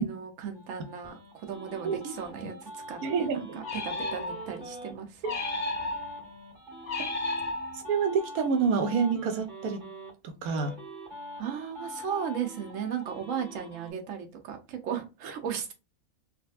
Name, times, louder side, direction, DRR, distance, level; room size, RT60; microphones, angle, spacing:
voice 1, 0.0-3.5 3.8-5.2 11.4-15.7, right 8 dB, 65° right, 1.1 m, -36 dB
sound 1, 0.5-4.9 5.2-10.1 10.4-13.9, equal, 35° right, 1.6 m, -44 dB
voice 2, 1.8-2.1 3.0-3.6 7.7-9.8 10.2-10.7, right 5 dB, 90° right, 1.2 m, -28 dB
sound 2, 3.6-4.7 5.2-6.3 6.9-8.1, left 2 dB, 40° left, 0.5 m, -33 dB
3.7 x 2.5 x 2.4 m
omnidirectional pair, 1.5 m